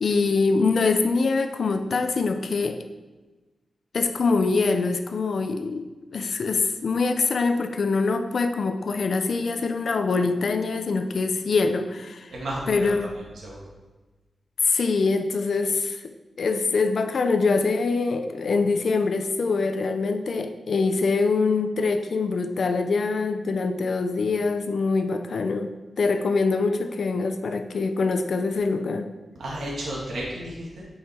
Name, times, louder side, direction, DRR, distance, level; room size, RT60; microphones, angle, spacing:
voice 1, 0.0-2.8 3.9-12.3 12.7-13.1 14.6-16.1 16.4-25.7 26.0-29.1, left 4 dB, 60° left, 7 dB, 0.7 m, -24 dB
voice 2, 12.3-13.6 29.4-30.8, right 1 dB, 75° right, -4 dB, 2.0 m, -33 dB
8.7 x 5.7 x 4.5 m, 1.2 s
wide cardioid pair, 140°, 0 cm